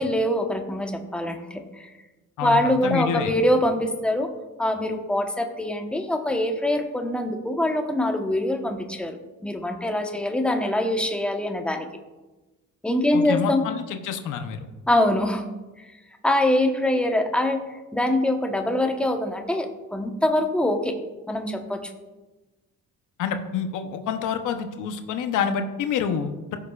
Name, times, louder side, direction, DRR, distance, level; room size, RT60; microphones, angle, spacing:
voice 1, 0.0-1.9 2.4-4.3 4.6-9.2 9.4-11.9 12.8-13.6 14.9-15.5 16.2-21.0 21.3-21.9, left 1 dB, 5° left, 4 dB, 1.1 m, -24 dB
voice 2, 2.4-3.3 13.1-14.6 23.2-26.6, left 7 dB, 85° left, 7 dB, 0.9 m, -27 dB
15.5 x 6.8 x 2.4 m, 1.1 s
cardioid pair, 90°, 30 cm